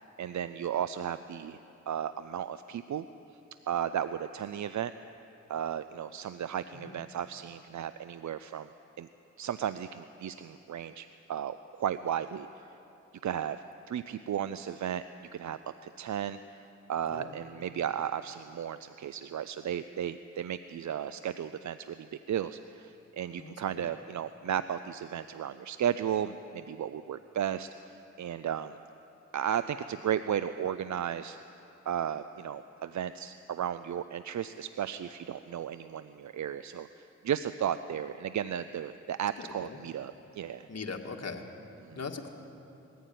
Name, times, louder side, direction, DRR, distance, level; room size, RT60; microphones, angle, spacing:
voice 1, 0.2-1.6 1.9-3.1 3.7-4.9 5.5-8.7 9.0-9.1 9.4-12.8 13.2-15.0 15.3-16.4 16.9-28.8 29.3-31.4 31.9-40.7 41.8-42.0, right 9 dB, 75° right, 13 dB, 0.6 m, -34 dB
voice 2, 17.1-17.7 23.4-23.9 39.4-39.8 40.7-41.4 42.0-42.3, left 4 dB, 60° left, 3 dB, 2.1 m, -41 dB
21.0 x 14.5 x 9.4 m, 2.8 s
cardioid pair, 55°, 29 cm